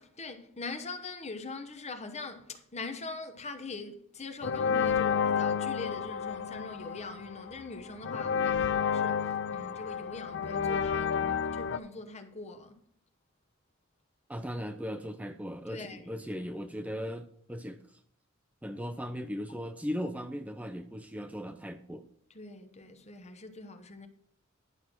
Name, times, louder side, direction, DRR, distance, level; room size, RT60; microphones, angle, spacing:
voice 1, 0.0-12.8 15.7-16.1 22.3-24.1, left 3 dB, 35° left, 1.0 m, -42 dB
sound 1, 4.4-11.8, left 7 dB, 60° left, 0.5 m, -30 dB
voice 2, 14.3-17.8 18.6-22.1, equal, 5° right, 0.5 m, -38 dB
11.0 x 5.8 x 6.2 m
head